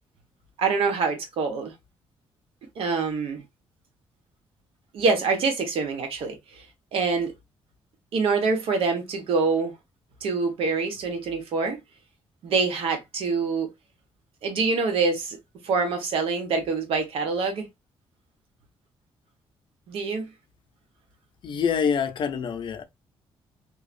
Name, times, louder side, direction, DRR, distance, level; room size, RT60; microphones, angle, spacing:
voice 1, 0.6-1.7 2.8-3.4 4.9-6.4 6.9-7.3 8.1-9.8 10.2-11.8 12.4-13.7 14.4-15.4 15.6-17.7 19.9-20.3, right 4 dB, 75° right, 1.0 m, -25 dB
voice 2, 21.4-22.8, left 7 dB, 55° left, 0.5 m, -26 dB
2.7 x 2.3 x 2.4 m
cardioid pair, 110°, 10 cm